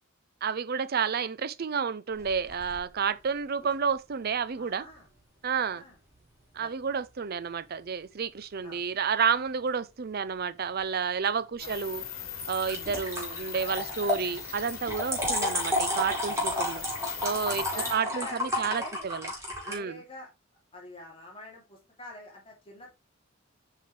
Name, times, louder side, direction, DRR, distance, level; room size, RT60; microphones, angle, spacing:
voice 1, 0.4-4.9 5.4-5.8 6.5-12.0 12.5-16.8 17.2-19.3 19.7-20.0, right 6 dB, 45° right, 0.5 m, -30 dB
sound 1, 2.1-2.8 12.4-19.8, left 1 dB, 10° right, 3.5 m, -32 dB
voice 2, 4.6-5.1 5.7-6.0 6.6-6.8 8.6-8.8 11.6-11.7 16.3-16.4 17.7-19.1 19.5-20.3 20.7-22.9, left 1 dB, 25° left, 2.8 m, -46 dB
sound 2, 11.6-17.9, left 8 dB, 70° left, 2.4 m, -40 dB
7.9 x 5.0 x 3.3 m
head